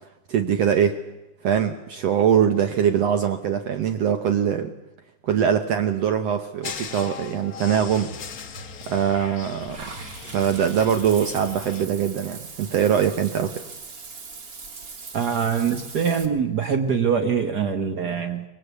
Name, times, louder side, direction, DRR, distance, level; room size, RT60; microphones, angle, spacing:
voice 1, 0.3-1.0 1.4-4.7 5.2-8.1 8.9-9.9 10.2-13.6, right 8 dB, 65° right, 8 dB, 1.9 m, -22 dB
sound 1, 6.6-11.9, left 5 dB, 85° left, 0.7 m, -38 dB
Water / Bathtub (filling or washing), 9.7-16.2, right 4 dB, 35° right, 1.6 m, -40 dB
voice 2, 15.1-18.4, right 6 dB, 80° right, 7 dB, 0.8 m, -23 dB
24.5 x 20.5 x 8.3 m, 1.0 s
omnidirectional pair, 3.7 m